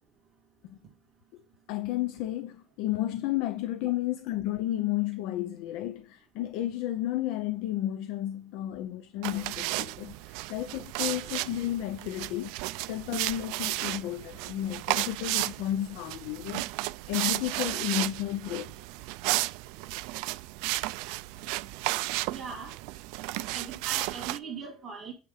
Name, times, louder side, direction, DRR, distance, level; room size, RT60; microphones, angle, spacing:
voice 1, 1.7-12.6 12.9-16.6 17.1-18.8, left 13 dB, 75° left, 0.5 m, -32 dB
sound 1, 9.2-24.4, right 20 dB, 80° right, 0.3 m, -33 dB
voice 2, 22.3-22.7 23.5-25.1, right 5 dB, 25° right, 2.0 m, -40 dB
8.8 x 3.5 x 4.9 m
cardioid pair, 170°, 0 cm